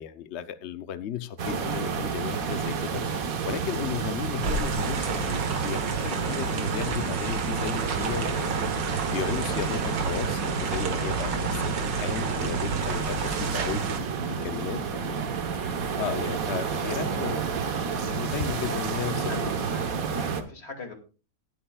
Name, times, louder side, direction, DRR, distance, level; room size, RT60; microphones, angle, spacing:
voice 1, 0.0-15.2 15.5-15.6 16.0-17.5 18.0-19.5, left 9 dB, 80° left, 12 dB, 0.6 m, -35 dB
sound 1, 1.4-20.4, right 5 dB, 55° right, 1.4 m, -30 dB
sound 2, 4.4-14.0, right 4 dB, 70° right, 2.1 m, -31 dB
voice 2, 18.4-18.8 19.3-19.8 20.1-20.9, left 3 dB, 35° left, 4 dB, 2.5 m, -41 dB
20.0 x 8.5 x 2.3 m, 0.35 s
omnidirectional pair, 2.0 m